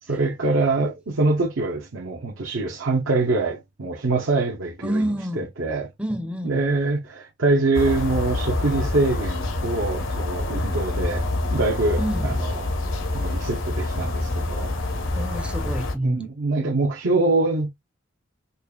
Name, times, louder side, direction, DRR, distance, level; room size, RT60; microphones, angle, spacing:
voice 1, 0.0-5.9 6.4-11.2 11.5-12.7 13.1-14.8 16.0-17.7, right 2 dB, 80° right, 0.8 m, -24 dB
voice 2, 4.8-5.5 6.0-6.6 12.0-12.4 15.2-16.3, right 1 dB, 5° right, 0.4 m, -28 dB
sound 1, 7.7-16.0, left 2 dB, 80° left, 0.8 m, -26 dB
5.3 x 2.4 x 2.2 m
head